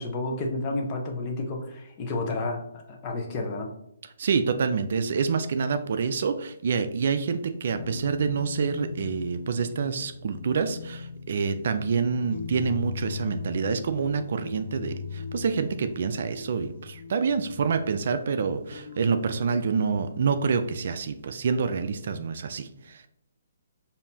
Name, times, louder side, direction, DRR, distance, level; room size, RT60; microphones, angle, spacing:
voice 1, 0.0-3.7, left 2 dB, 30° left, 1 dB, 0.8 m, -31 dB
voice 2, 4.2-23.0, right 5 dB, 60° right, 10 dB, 0.4 m, -27 dB
sound 1, 7.7-20.3, left 5 dB, 55° left, 0.6 m, -40 dB
5.1 x 2.7 x 2.8 m, 0.76 s
hypercardioid pair, 150°, 0 cm